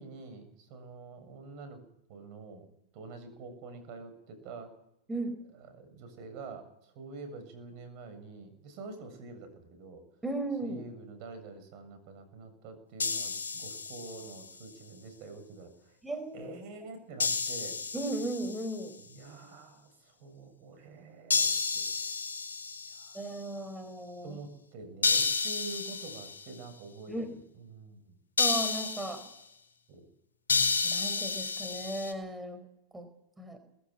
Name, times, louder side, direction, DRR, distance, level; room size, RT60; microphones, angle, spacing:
voice 1, 0.0-1.8 2.1-2.7 2.9-4.7 5.6-10.0 10.6-16.0 16.3-17.8 19.1-22.1 23.0-23.2 24.2-27.1 27.5-28.2 29.9-30.1, right 3 dB, 50° right, 9 dB, 7.3 m, -46 dB
voice 2, 10.2-10.8 16.0-16.5 17.9-19.0 23.1-24.4 27.1-27.3 28.4-29.2 30.8-32.6 32.9-33.1 33.4-33.6, right 2 dB, 10° right, 7 dB, 4.6 m, -36 dB
sound 1, 13.0-14.4 17.2-18.8 21.3-23.2 25.0-26.5 28.4-29.3 30.5-32.1, left 4 dB, 85° left, 4.6 m, -31 dB
21.0 x 16.0 x 8.4 m, 0.82 s
hypercardioid pair, 105°, 0 cm